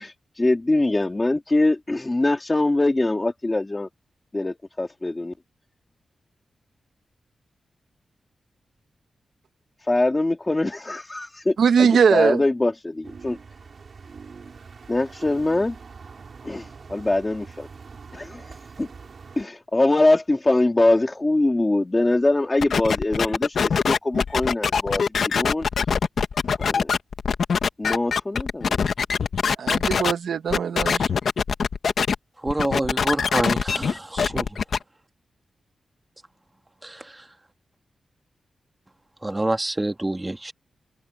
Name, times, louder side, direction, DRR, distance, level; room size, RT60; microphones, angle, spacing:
voice 1, 0.0-3.9 4.3-5.3 9.9-13.4 14.9-15.8 16.4-17.7 18.1-18.5 18.8-18.9 19.4-25.7 26.6-26.9 27.8-28.8, left 2 dB, 15° left, 2.0 m, -23 dB
voice 2, 11.6-12.4 29.6-31.0, right 7 dB, 85° right, 1.4 m, -20 dB
sound 1, 13.0-19.4, right 5 dB, 50° right, 5.7 m, -43 dB
sound 2, 22.6-30.1 30.5-32.2 32.5-34.8, left 6 dB, 65° left, 1.3 m, -23 dB
voice 3, 32.4-33.9 34.2-34.4 36.8-37.1 39.2-40.5, right 1 dB, 15° right, 1.7 m, -26 dB
open air
wide cardioid pair, 170°, 0 cm